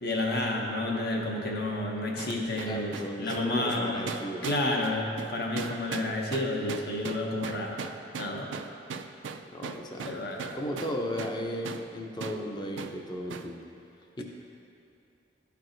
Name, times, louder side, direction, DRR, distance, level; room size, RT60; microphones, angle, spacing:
voice 1, 0.0-2.9 3.2-4.0 4.4-7.8 8.2-8.5 10.0-10.6, left 2 dB, 60° left, 0 dB, 0.9 m, -30 dB
sound 1, 2.2-11.4 11.7-11.9 12.2-12.4 12.8-13.0 13.3-13.5, right 6 dB, 85° right, 0.4 m, -39 dB
voice 2, 2.7-4.5 9.5-10.1 10.5-13.5 14.2-14.3, equal, 25° left, 1 dB, 0.6 m, -35 dB
12.0 x 4.6 x 2.6 m, 2.6 s
head